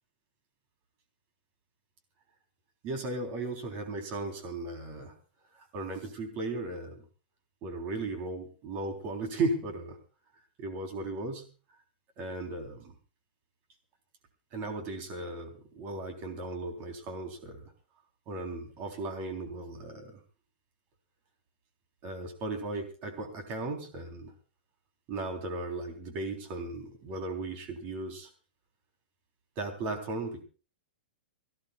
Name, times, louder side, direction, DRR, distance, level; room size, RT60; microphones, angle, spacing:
voice 1, 2.8-5.1 5.5-7.0 7.6-10.0 10.6-11.5 12.2-12.9 14.5-17.7 18.3-20.2 22.0-24.3 25.1-28.3 29.6-30.4, right 2 dB, 35° right, 6 dB, 3.6 m, -36 dB
25.0 x 16.0 x 2.4 m, 0.35 s
supercardioid pair, 155°, 5 cm